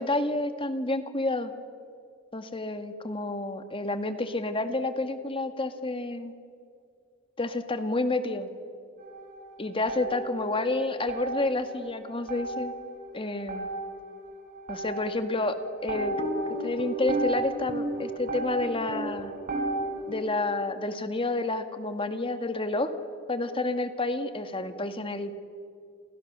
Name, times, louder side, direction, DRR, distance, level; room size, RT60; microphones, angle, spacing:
voice 1, 0.0-1.5 2.3-6.3 7.4-8.5 9.6-12.7 13.1-13.7 14.7-16.2 16.6-19.3 20.1-22.9 23.3-25.3, left 2 dB, 30° left, 8 dB, 1.9 m, -29 dB
sound 1, 9.0-10.7 11.0-20.2, right 1 dB, 50° right, 6.4 m, -34 dB
29.5 x 29.0 x 6.8 m, 2.3 s
head